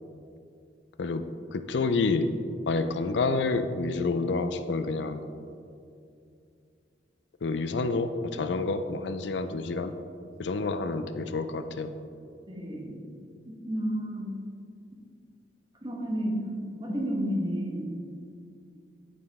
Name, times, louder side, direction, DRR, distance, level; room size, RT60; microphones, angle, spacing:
voice 1, 1.0-2.3 2.7-5.2 7.4-10.0 10.4-11.9, left 3 dB, 70° left, 9 dB, 0.5 m, -28 dB
voice 2, 12.5-13.0 13.5-14.5 15.8-17.9, equal, 25° right, 0 dB, 1.3 m, -31 dB
14.5 x 5.0 x 3.5 m, 2.4 s
head